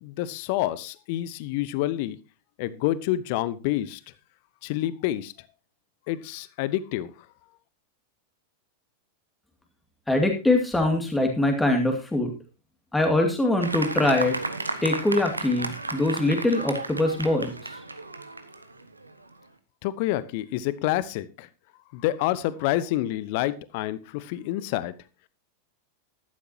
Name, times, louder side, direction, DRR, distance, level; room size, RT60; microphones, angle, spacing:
voice 1, 0.0-2.2 2.6-4.0 4.6-5.3 6.1-7.1 19.8-21.5 21.9-24.9, left 14 dB, 45° left, 17 dB, 0.8 m, -28 dB
voice 2, 10.1-12.3 12.9-14.4 14.8-17.7, left 2 dB, 5° left, 3 dB, 2.4 m, -23 dB
Fireworks, 13.6-19.3, right 2 dB, 80° right, 1.4 m, -33 dB
14.5 x 12.0 x 2.8 m, 0.31 s
figure-of-eight pair, 90°, 0 cm